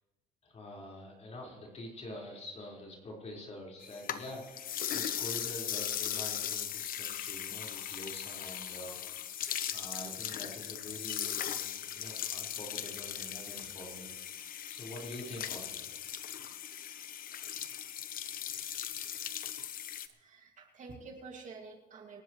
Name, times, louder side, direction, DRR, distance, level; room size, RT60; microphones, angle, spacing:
voice 1, 0.4-9.3 9.7-14.1 14.4-15.8, left 1 dB, 40° left, -2 dB, 4.8 m, -46 dB
sound 1, 3.8-20.1, left 10 dB, 55° left, 1.1 m, -38 dB
voice 2, 20.1-22.2, right 4 dB, 45° right, 1 dB, 2.4 m, -49 dB
26.5 x 12.5 x 3.2 m, 1.1 s
cardioid pair, 110°, 17 cm